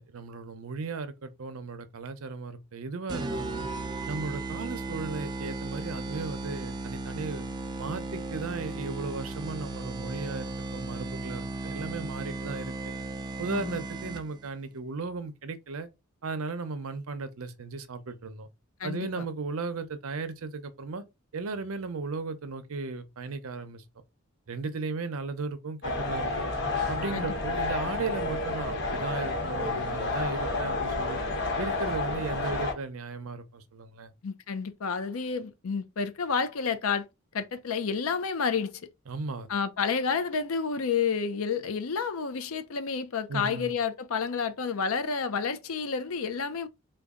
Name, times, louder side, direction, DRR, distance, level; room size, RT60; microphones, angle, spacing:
voice 1, 0.0-3.7 4.1-7.5 7.8-12.7 13.4-15.9 16.2-18.5 18.8-21.0 21.3-23.8 24.5-26.3 26.9-31.2 31.6-34.1 39.1-39.5 43.3-43.7, right 4 dB, 70° right, 0.6 m, -36 dB
sound 1, 3.1-14.5, right 2 dB, 20° right, 0.3 m, -36 dB
voice 2, 13.5-13.8 18.8-19.2 27.1-27.4 34.2-37.0 37.3-38.7 39.5-46.7, left 5 dB, 75° left, 0.5 m, -30 dB
sound 2, 25.8-32.7, left 3 dB, 50° left, 1.1 m, -30 dB
3.9 x 2.3 x 3.5 m
head